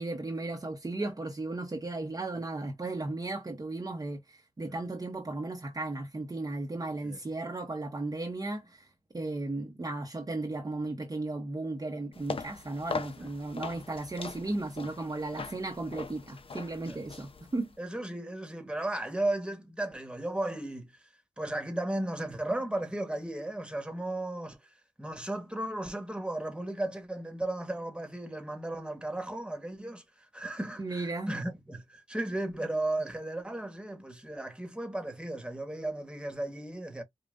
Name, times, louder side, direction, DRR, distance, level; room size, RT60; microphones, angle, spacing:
voice 1, 0.0-8.9 9.1-17.7 30.8-31.4, right 2 dB, 30° right, 0.9 m, -35 dB
sound 1, 12.1-17.8, left 4 dB, 50° left, 0.7 m, -41 dB
voice 2, 17.8-21.0 21.4-37.0, right 1 dB, 10° right, 1.2 m, -35 dB
5.2 x 2.3 x 2.5 m
wide cardioid pair, 95°, 12 cm